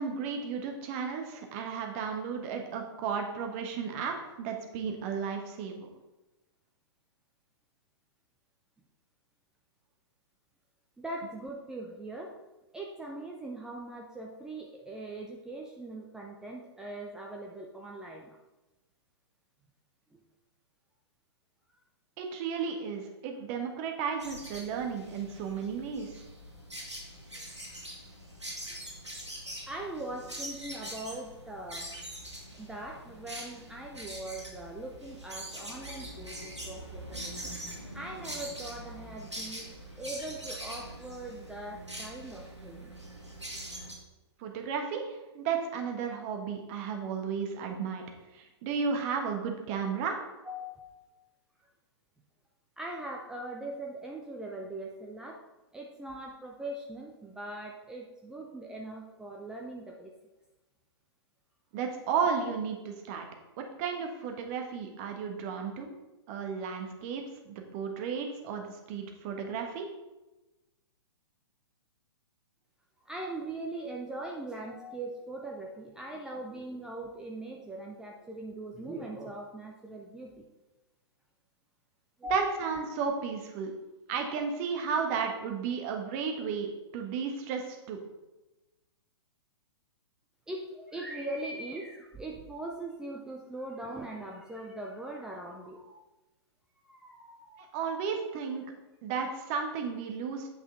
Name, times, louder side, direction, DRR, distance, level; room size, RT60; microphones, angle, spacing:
voice 1, 0.0-5.9 22.2-26.2 44.4-48.0 48.3-50.2 61.7-63.2 63.6-65.9 66.3-69.9 82.3-83.7 84.1-88.0 97.6-98.6 99.0-100.5, right 6 dB, 35° right, 3 dB, 1.3 m, -33 dB
voice 2, 11.0-12.3 12.7-18.4 20.1-20.2 27.3-27.5 28.7-28.8 29.7-31.9 32.5-37.5 37.9-39.7 40.0-42.9 50.4-51.1 51.6-51.7 52.8-55.4 55.7-60.1 73.0-80.5 82.2-82.6 90.5-96.0 96.8-97.9, right 1 dB, 5° right, -1 dB, 0.5 m, -41 dB
sound 1, 24.2-43.9, right 1 dB, 85° right, 2.0 m, -43 dB
8.4 x 5.8 x 3.8 m, 1.1 s
figure-of-eight pair, 115°, 14 cm